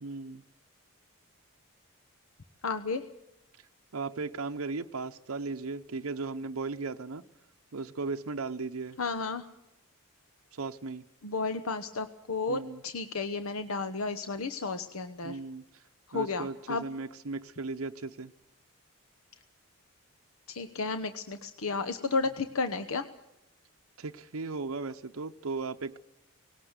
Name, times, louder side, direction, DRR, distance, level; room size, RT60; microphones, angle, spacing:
voice 1, 0.0-0.4 3.9-7.2 7.7-9.0 10.5-11.0 12.5-12.8 15.2-15.6 16.1-18.3 24.0-26.0, right 3 dB, 75° right, 5 dB, 0.7 m, -36 dB
voice 2, 2.6-3.0 9.0-9.5 11.2-15.4 16.1-16.8 20.5-23.1, left 4 dB, 80° left, 9 dB, 1.0 m, -32 dB
19.5 x 17.5 x 8.0 m, 0.89 s
head